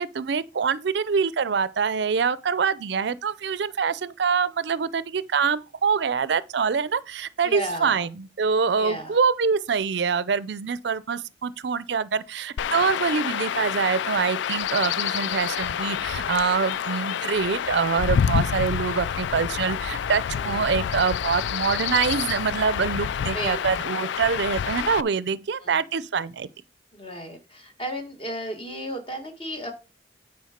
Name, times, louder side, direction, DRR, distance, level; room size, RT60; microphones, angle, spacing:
voice 1, 0.0-26.5, right 6 dB, 65° right, 0.4 m, -25 dB
voice 2, 7.4-8.1 8.8-9.2 20.3-20.7 23.3-23.6 25.6-25.7 26.9-29.7, equal, 30° left, 1.6 m, -34 dB
Chirp tweet / Wind / Stream, 12.6-25.0, left 8 dB, 75° left, 0.3 m, -28 dB
9.4 x 4.6 x 5.0 m
head